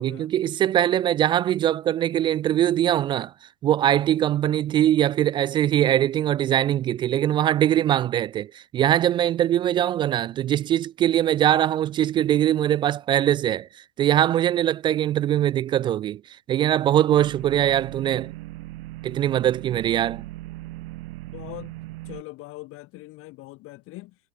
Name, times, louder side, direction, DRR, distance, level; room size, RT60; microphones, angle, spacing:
voice 1, 0.0-3.3 3.6-13.7 14.0-16.2 16.5-18.3 19.0-20.3, right 11 dB, 10° right, 0.5 m, -22 dB
sound 1, 17.1-22.2, right 18 dB, 45° right, 1.6 m, -38 dB
voice 2, 21.3-21.7 22.0-24.2, left 20 dB, 30° left, 2.4 m, -41 dB
figure-of-eight pair, 105°, 41 cm